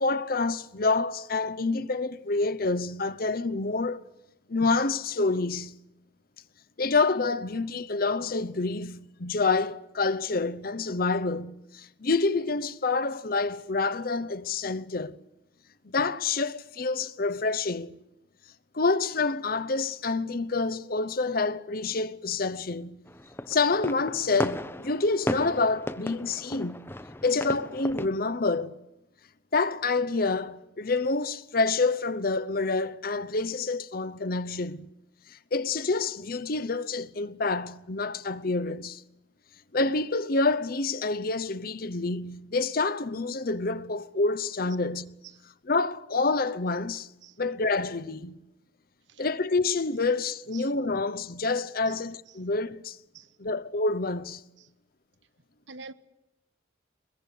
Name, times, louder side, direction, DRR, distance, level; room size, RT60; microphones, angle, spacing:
voice 1, 0.0-4.0 4.5-5.7 6.8-15.2 15.8-18.0 18.7-23.0 23.5-26.9 27.2-28.8 29.5-34.9 35.3-39.0 39.7-45.1 45.6-47.1 47.4-48.4 49.2-53.0 53.4-54.4, left 3 dB, 50° left, 0.8 m, -27 dB
sound 1, 23.1-28.1, left 1 dB, 10° left, 0.9 m, -35 dB
voice 2, 47.2-47.4 49.1-49.2 50.5-50.7 51.9-52.0 52.4-52.5 53.1-53.3 54.6-54.7 55.7-55.9, right 4 dB, 70° right, 1.2 m, -46 dB
22.5 x 22.0 x 8.5 m
head